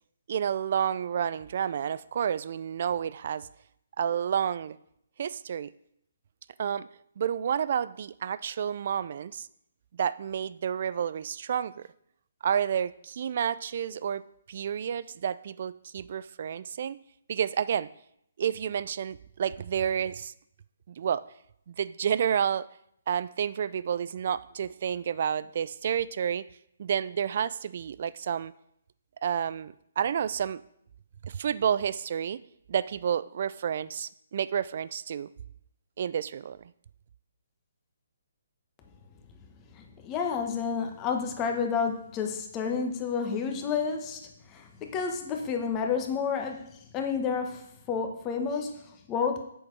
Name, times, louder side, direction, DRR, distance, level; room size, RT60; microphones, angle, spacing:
voice 1, 0.3-3.5 4.0-4.8 5.2-5.7 6.6-6.9 7.2-9.5 9.9-11.8 12.4-14.2 14.5-17.0 17.3-17.9 18.4-20.3 20.9-21.2 21.7-22.7 23.1-26.4 26.8-28.5 29.2-30.6 31.2-32.4 32.7-35.3 36.0-36.6, right 8 dB, 50° right, 18 dB, 0.4 m, -30 dB
voice 2, 39.8-49.4, left 6 dB, 20° left, 4 dB, 1.2 m, -30 dB
7.7 x 6.5 x 4.7 m, 0.73 s
hypercardioid pair, 145°, 0 cm